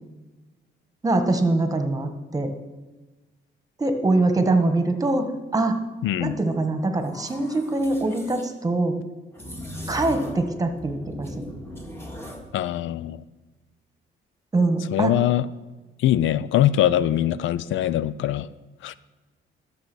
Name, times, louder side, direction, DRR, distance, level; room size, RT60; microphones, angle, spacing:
voice 1, 1.0-2.5 3.8-5.2 5.5-5.8 6.2-8.9 9.9-11.3 14.5-15.1, right 2 dB, 20° right, 7 dB, 1.6 m, -23 dB
voice 2, 6.0-6.4 12.5-13.2 14.9-15.5 16.0-18.5 18.8-18.9, left 12 dB, 75° left, 18 dB, 0.5 m, -22 dB
sound 1, 7.0-8.5 9.3-10.5 10.8-12.5, equal, 10° left, 2.2 m, -38 dB
12.5 x 6.8 x 6.2 m, 1.2 s
cardioid pair, 90°, 20 cm